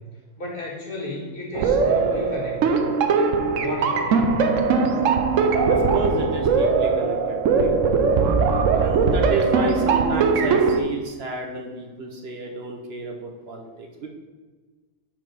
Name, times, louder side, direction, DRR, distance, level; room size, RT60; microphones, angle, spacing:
voice 1, 0.4-2.8 3.6-4.5 8.6-9.1, left 1 dB, 45° left, -2 dB, 1.8 m, -34 dB
sound 1, 1.5-10.8, right 5 dB, 85° right, 1.1 m, -20 dB
voice 2, 5.6-7.7 8.8-14.1, right 2 dB, 55° right, 3 dB, 1.1 m, -31 dB
5.7 x 4.9 x 6.2 m, 1.4 s
omnidirectional pair, 1.3 m